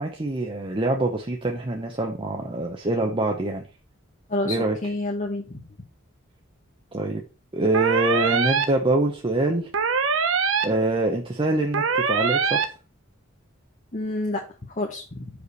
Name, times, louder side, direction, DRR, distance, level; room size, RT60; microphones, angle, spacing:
voice 1, 0.0-3.6 4.4-4.8 6.9-7.2 7.5-9.7 10.6-12.6, right 2 dB, 25° right, 2 dB, 0.8 m, -25 dB
voice 2, 4.8-5.6 13.9-15.3, left 2 dB, 40° left, 1 dB, 1.0 m, -29 dB
sound 1, 7.7-8.6 9.7-10.6 11.7-12.6, right 5 dB, 70° right, 0.9 m, -22 dB
5.0 x 4.9 x 6.3 m, 0.34 s
head